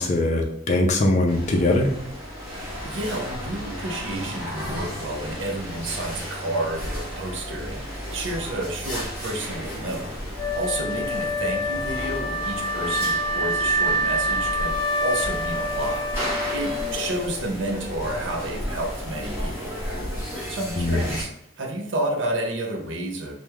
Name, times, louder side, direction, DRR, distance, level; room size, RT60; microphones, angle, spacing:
voice 1, 0.0-1.9 20.8-21.0, left 2 dB, 35° left, 1 dB, 0.4 m, -21 dB
sound 1, 1.3-21.2, equal, 10° right, 1.0 m, -33 dB
voice 2, 2.8-10.1 10.5-16.1 16.5-19.8 20.5-21.3 21.6-23.3, right 1 dB, 65° right, 3 dB, 0.6 m, -30 dB
Wind instrument woodwind instrument, 10.4-17.4, equal, 5° left, 0.7 m, -26 dB
2.9 x 2.1 x 3.4 m, 0.72 s
head